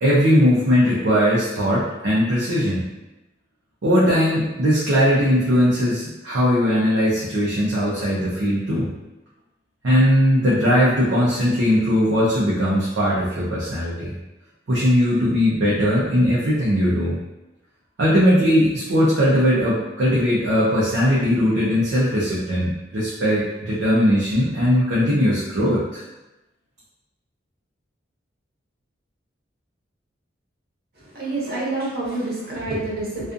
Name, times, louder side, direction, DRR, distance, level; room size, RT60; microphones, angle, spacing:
voice 1, 0.0-2.9 3.8-8.9 9.8-14.2 14.7-17.2 18.0-26.0, equal, 70° right, -7 dB, 0.5 m, -19 dB
voice 2, 31.1-33.3, right 2 dB, 50° right, -7 dB, 0.9 m, -27 dB
2.4 x 2.4 x 2.5 m, 0.99 s
head